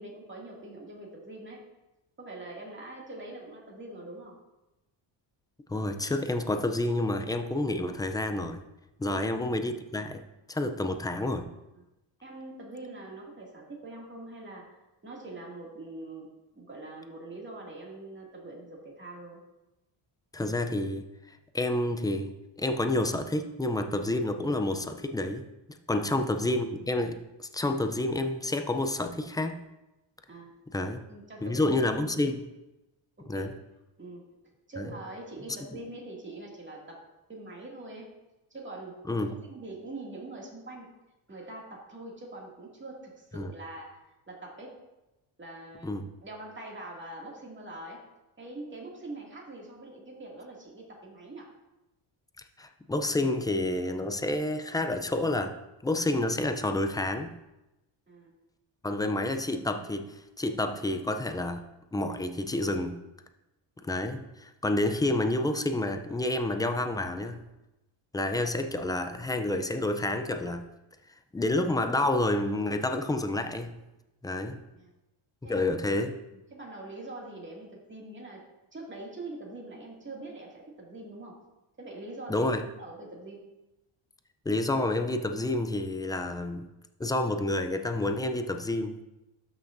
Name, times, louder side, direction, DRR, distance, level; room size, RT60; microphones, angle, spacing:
voice 1, 0.0-1.6 2.2-4.4 11.7-11.8 12.2-14.8 15.0-19.4 25.9-26.1 30.3-30.5 30.8-31.8 33.2-33.5 34.0-34.3 34.7-38.1 38.5-39.0 39.5-40.9 41.3-44.0 44.3-44.8 45.4-45.9 46.2-48.0 48.4-51.5 58.1-58.3 74.7-74.9 75.4-75.7 76.5-78.4 78.7-81.4 81.8-82.5 82.8-83.5, right 2 dB, 25° right, -2 dB, 2.2 m, -43 dB
voice 2, 5.7-8.6 9.0-11.5 20.3-21.1 21.5-22.3 22.6-25.5 25.9-29.6 30.7-31.0 31.4-32.5 33.3-33.5 34.8-34.9 39.1-39.3 43.4-43.5 45.8-46.1 52.6-55.6 55.8-57.3 58.8-61.6 61.9-63.0 63.8-67.4 68.1-70.7 71.3-73.8 74.2-74.6 75.4-76.2 82.3-82.7 84.5-86.7 87.0-89.0, left 2 dB, 10° left, 7 dB, 0.3 m, -29 dB
12.5 x 6.1 x 2.6 m, 0.98 s
cardioid pair, 120°, 50 cm